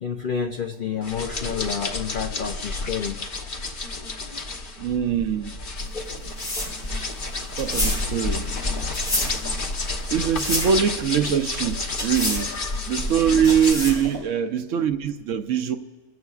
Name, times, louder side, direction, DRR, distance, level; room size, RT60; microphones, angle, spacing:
voice 1, 0.0-3.2 7.8-7.9, left 7 dB, 65° left, 0.5 m, -29 dB
sound 1, 1.0-13.7, left 3 dB, 40° left, 1.0 m, -30 dB
voice 2, 4.8-5.6 7.6-8.5 10.1-12.5 12.9-15.8, right 8 dB, 65° right, 0.9 m, -23 dB
sound 2, 5.8-14.2, left 1 dB, 85° left, 6.4 m, -30 dB
28.5 x 15.5 x 2.4 m
omnidirectional pair, 1.6 m